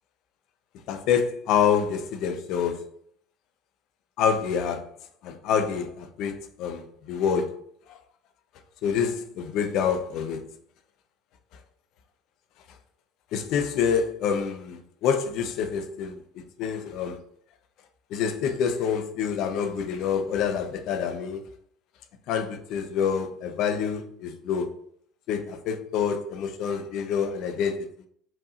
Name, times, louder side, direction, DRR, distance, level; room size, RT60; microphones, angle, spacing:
voice 1, 0.9-2.8 4.2-4.9 5.2-7.6 7.9-8.0 8.8-10.5 13.3-17.2 18.1-21.4 22.3-24.7 25.3-27.9, left 7 dB, 60° left, 0.8 m, -27 dB
7.5 x 4.8 x 2.6 m
hypercardioid pair, 65°, 0 cm